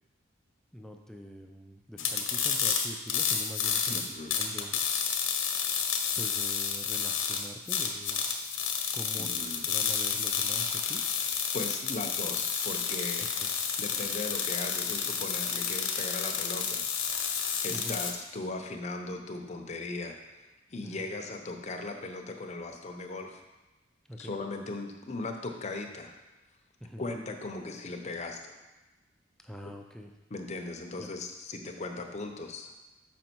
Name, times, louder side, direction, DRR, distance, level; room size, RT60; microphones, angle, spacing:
voice 1, 0.7-4.8 6.2-8.2 8.9-9.3 9.7-11.0 13.4-13.5 17.7-18.0 20.8-21.1 24.1-24.4 26.8-27.0 29.4-30.1 31.0-31.1, equal, 5° left, 2 dB, 0.4 m, -44 dB
sound 1, 2.0-18.1, left 7 dB, 85° left, 0.9 m, -30 dB
voice 2, 3.9-4.3 9.2-9.6 11.5-13.3 13.8-16.9 17.6-23.4 24.2-26.1 27.0-28.6 29.6-29.7 30.3-32.7, left 2 dB, 35° left, 4 dB, 0.7 m, -38 dB
6.3 x 5.2 x 4.5 m, 1.1 s
head